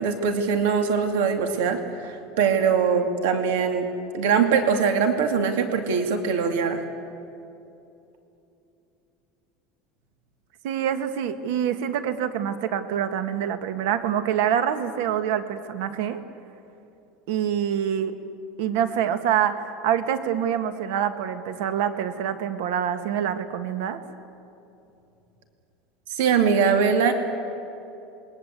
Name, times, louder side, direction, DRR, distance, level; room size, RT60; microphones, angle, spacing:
voice 1, 0.0-3.9 4.1-6.8 26.2-27.1, right 6 dB, 85° right, 5 dB, 2.4 m, -22 dB
voice 2, 10.6-16.2 17.3-18.1 18.6-24.0, right 9 dB, 65° right, 9 dB, 1.7 m, -26 dB
28.5 x 22.0 x 8.3 m, 2.8 s
cardioid pair, 175°, 0 cm